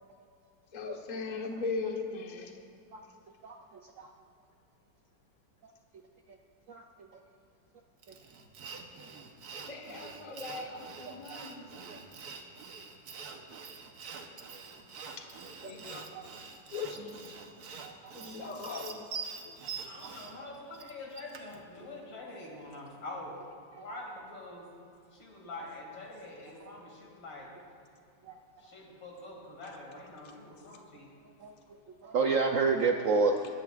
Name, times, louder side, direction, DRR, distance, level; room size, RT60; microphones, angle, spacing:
voice 1, 0.7-2.5 9.5-11.7 15.6-17.4 18.1-19.1 19.4-19.6 29.6-29.8 30.2-30.3 33.4-33.5, left 4 dB, 30° left, 2 dB, 0.9 m, -39 dB
voice 2, 3.4-4.1 6.3-6.4 6.7-7.2 10.0-10.1 10.4-10.5 11.1-11.5 11.9-12.0 13.4-13.5 16.1-16.3 17.8-18.3 19.6-19.7 20.0-20.2 23.7-23.9 26.6-26.8 28.2-28.4 31.4-33.4, right 4 dB, 85° right, 4 dB, 0.7 m, -32 dB
Sawing, 8.0-21.6, right 5 dB, 60° right, 1.3 m, -45 dB
voice 3, 19.8-23.3 23.8-24.7 25.1-27.5 28.6-31.1, left 2 dB, 70° left, -1 dB, 3.2 m, -45 dB
20.5 x 14.0 x 2.5 m, 2.5 s
omnidirectional pair, 2.1 m